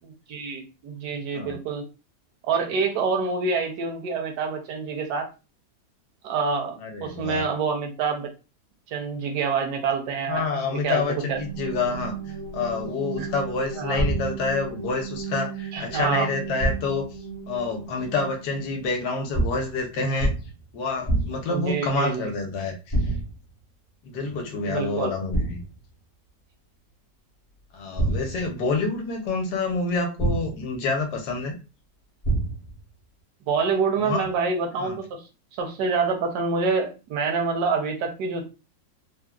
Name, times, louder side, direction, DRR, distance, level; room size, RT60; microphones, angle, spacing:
voice 1, 0.0-1.9 2.4-5.3 6.2-6.8 7.0-8.3 8.9-10.4 10.7-11.0 11.3-11.4 13.2-13.3 13.8-14.0 15.7-16.3 21.5-22.3 24.7-25.1 33.5-35.2 35.6-38.4, right 5 dB, 70° right, 2 dB, 1.2 m, -26 dB
voice 2, 6.8-7.5 10.3-12.2 12.5-17.0 17.5-20.3 20.7-23.1 24.0-25.6 27.7-31.6 34.0-34.2 34.8-35.0, left 3 dB, 70° left, 3 dB, 1.2 m, -28 dB
sound 1, 11.0-18.8, right 6 dB, 85° right, 1.5 m, -36 dB
sound 2, 14.0-14.5 16.6-17.1 19.3-19.8 20.2-20.6 21.1-21.6 22.9-23.5 25.3-25.8 28.0-28.6 30.2-30.8 32.2-32.8, right 1 dB, 35° left, 0.5 m, -26 dB
3.5 x 2.1 x 2.3 m, 0.30 s
omnidirectional pair, 2.0 m